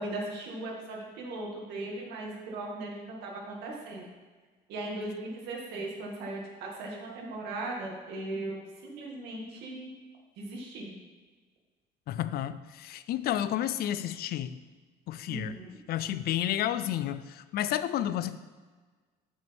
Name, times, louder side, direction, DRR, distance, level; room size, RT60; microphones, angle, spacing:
voice 1, 0.0-2.9 3.2-4.0 4.7-9.9 10.4-10.9 15.3-15.7, right 2 dB, 85° right, -1 dB, 2.2 m, -38 dB
voice 2, 12.1-14.6 15.1-15.6 15.9-18.4, left 12 dB, 65° left, 14 dB, 0.5 m, -31 dB
9.5 x 8.1 x 3.6 m, 1.4 s
cardioid pair, 110°, 17 cm